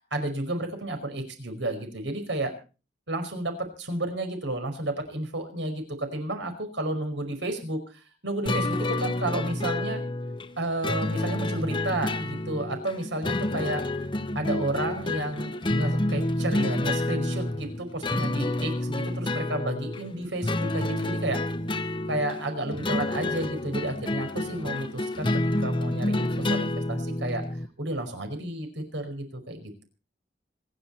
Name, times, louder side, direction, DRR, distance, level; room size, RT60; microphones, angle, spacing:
voice 1, 0.1-2.5 3.1-10.0 10.6-13.9 14.4-21.4 22.1-25.3 25.6-27.4 27.8-29.8, right 1 dB, 85° right, 6 dB, 5.3 m, -32 dB
sound 1, 8.5-27.7, left 1 dB, 25° left, 0.9 m, -29 dB
26.5 x 10.5 x 4.4 m, 0.36 s
head